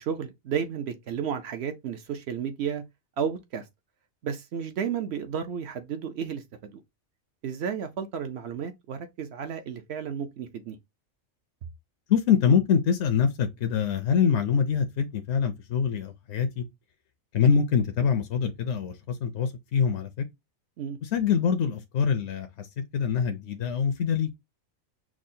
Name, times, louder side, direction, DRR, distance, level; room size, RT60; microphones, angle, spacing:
voice 1, 0.0-2.8 3.2-3.6 4.2-6.8 7.4-10.8 20.8-21.0, right 7 dB, 65° right, 0.7 m, -32 dB
voice 2, 12.1-16.6 17.3-18.9 19.2-20.2 21.1-22.7 22.9-24.3, left 7 dB, 65° left, 0.8 m, -24 dB
6.0 x 2.0 x 2.6 m
omnidirectional pair, 1.4 m